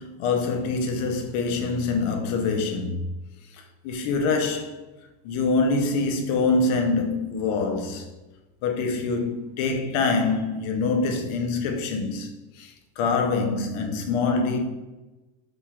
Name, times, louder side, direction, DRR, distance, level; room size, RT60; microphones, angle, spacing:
voice 1, 0.0-3.0 3.5-4.8 5.2-8.1 8.6-12.3 12.5-14.6, left 3 dB, 70° left, 0.9 m, -25 dB
5.2 x 2.4 x 3.5 m
cardioid pair, 160°, 50 cm